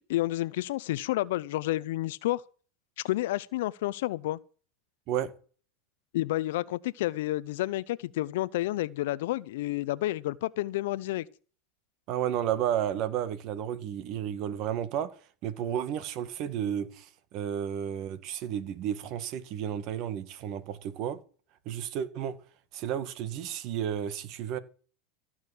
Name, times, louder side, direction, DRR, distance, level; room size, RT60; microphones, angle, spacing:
voice 1, 0.1-2.4 3.0-4.4 6.1-11.3, left 16 dB, 75° left, 0.7 m, -30 dB
voice 2, 12.1-15.1 15.4-21.2 21.7-22.4 22.7-24.6, right 10 dB, 50° right, 2.1 m, -32 dB
16.0 x 6.4 x 8.3 m
hypercardioid pair, 115°, 0 cm